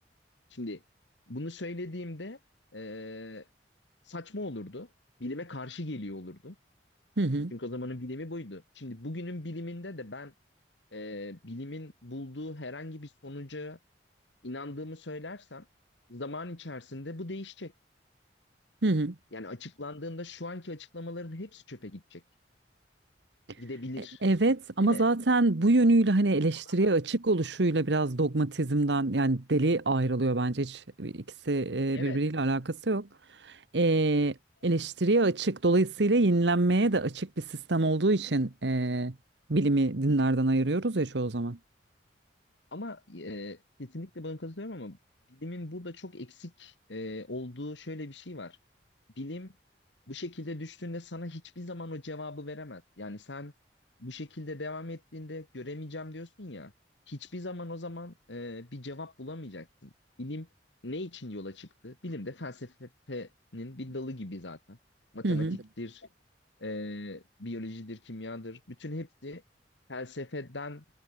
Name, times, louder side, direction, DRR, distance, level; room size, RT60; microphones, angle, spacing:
voice 1, 0.5-0.8 1.3-2.4 2.7-3.5 4.1-4.9 5.2-6.6 7.5-10.3 10.9-13.8 14.4-15.7 16.1-17.7 19.3-22.2 23.6-24.2 24.8-25.0 26.7-26.9 31.9-32.2 42.7-45.0 45.3-48.6 49.2-49.5 50.1-53.5 54.0-56.7 57.1-59.9 60.2-60.5 60.8-64.8 65.1-66.1 66.6-69.4 69.9-70.8, left 2 dB, 90° left, 2.1 m, -39 dB
voice 2, 7.2-7.5 18.8-19.1 24.2-33.1 33.4-34.3 34.6-39.1 39.5-41.6 65.2-65.6, right 2 dB, 75° right, 1.2 m, -26 dB
head